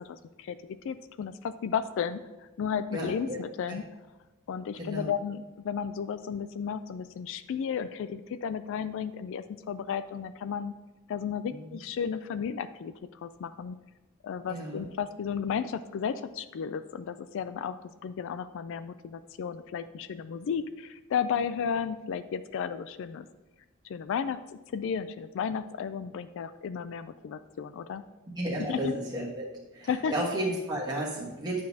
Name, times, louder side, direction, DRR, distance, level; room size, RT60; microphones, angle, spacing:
voice 1, 0.0-2.2 2.6-3.8 4.5-10.7 11.1-13.8 14.2-23.3 23.8-28.0 28.7-28.9 29.9-30.1, left 7 dB, 65° left, 12 dB, 0.3 m, -33 dB
voice 2, 2.9-3.4 3.7-3.8 4.7-5.1 11.5-11.8 14.5-14.9 28.3-29.4 29.7-31.6, right 1 dB, 20° right, -5 dB, 1.4 m, -33 dB
9.6 x 6.3 x 2.8 m, 1.1 s
head